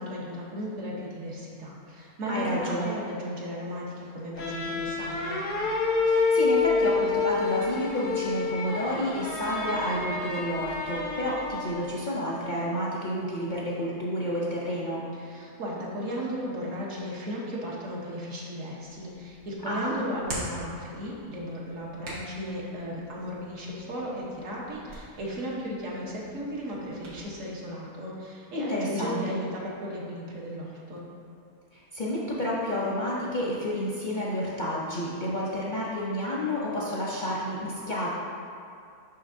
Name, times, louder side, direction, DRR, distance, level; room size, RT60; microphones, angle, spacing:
voice 1, 0.0-5.4 15.2-31.0, equal, 60° right, -4 dB, 1.4 m, -35 dB
voice 2, 2.3-3.0 6.1-15.0 19.6-19.9 28.5-29.4 31.7-38.1, equal, 50° left, -6 dB, 0.6 m, -30 dB
sound 1, 4.4-11.9, left 4 dB, 90° left, 1.3 m, -28 dB
Hands, 18.8-27.2, right 1 dB, 80° right, 1.8 m, -45 dB
6.8 x 5.8 x 2.6 m, 2.3 s
omnidirectional pair, 1.5 m